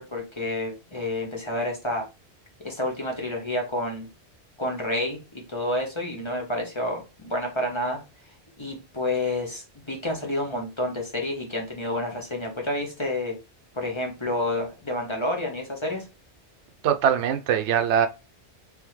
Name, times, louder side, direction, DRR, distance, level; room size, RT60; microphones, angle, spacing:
voice 1, 0.0-2.0 2.6-4.1 4.6-8.0 8.6-13.4 13.7-16.0, left 1 dB, 25° left, 1.0 m, -29 dB
voice 2, 16.8-18.1, right 8 dB, 85° right, 0.9 m, -22 dB
3.5 x 3.4 x 3.1 m
omnidirectional pair, 1.1 m